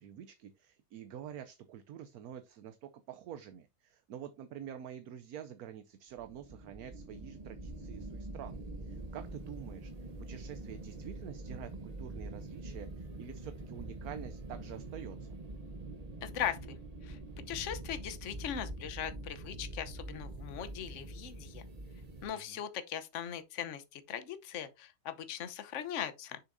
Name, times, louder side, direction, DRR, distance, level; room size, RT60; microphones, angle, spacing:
voice 1, 0.0-9.9 10.2-15.3 22.3-22.6, right 9 dB, 65° right, 1.0 m, -47 dB
sound 1, 6.2-22.3, right 2 dB, 35° right, 0.7 m, -45 dB
voice 2, 16.2-17.2 17.5-21.6 22.2-26.4, left 9 dB, 50° left, 1.1 m, -39 dB
7.1 x 6.7 x 2.6 m
omnidirectional pair, 1.9 m